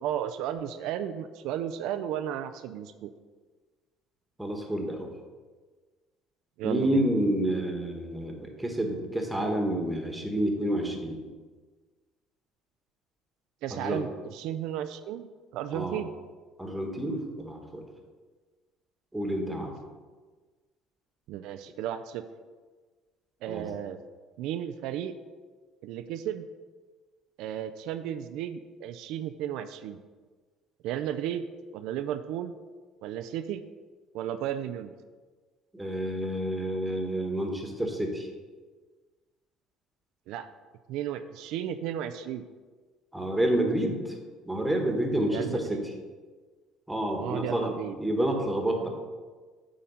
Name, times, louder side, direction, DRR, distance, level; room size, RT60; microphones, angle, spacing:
voice 1, 0.0-3.1 6.6-7.0 13.6-16.1 21.3-22.2 23.4-24.0 24.4-25.1 25.8-26.5 27.4-30.0 30.8-31.5 31.7-32.5 33.0-33.6 34.1-34.9 40.3-40.5 40.9-42.4 45.3-45.8 47.2-48.0, right 10 dB, 75° right, 10 dB, 0.4 m, -34 dB
voice 2, 4.4-5.1 6.6-11.2 13.7-14.0 15.7-16.0 16.6-17.8 19.1-19.7 23.5-23.7 35.7-38.3 43.1-44.0 44.5-45.8 46.9-48.9, right 1 dB, 5° right, 3 dB, 1.3 m, -29 dB
8.4 x 3.8 x 5.5 m, 1.4 s
cardioid pair, 110°, 0 cm